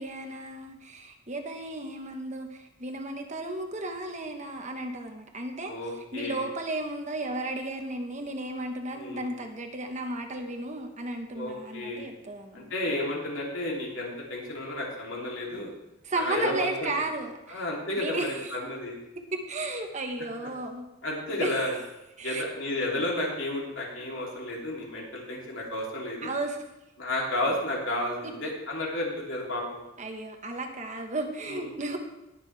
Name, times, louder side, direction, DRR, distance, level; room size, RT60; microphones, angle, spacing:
voice 1, 0.0-5.7 6.1-12.7 16.0-17.6 18.0-18.5 19.3-20.9 21.3-21.7 22.2-22.5 26.2-26.6 28.2-28.5 30.0-32.0, right 2 dB, 35° right, 4 dB, 1.2 m, -34 dB
voice 2, 5.6-6.4 8.9-9.3 11.3-12.1 12.5-15.7 16.2-17.0 17.5-18.9 21.0-21.7 22.2-26.3 27.0-29.8 31.5-31.7, left 1 dB, 75° left, -3 dB, 3.2 m, -32 dB
19.5 x 6.8 x 3.4 m, 0.95 s
head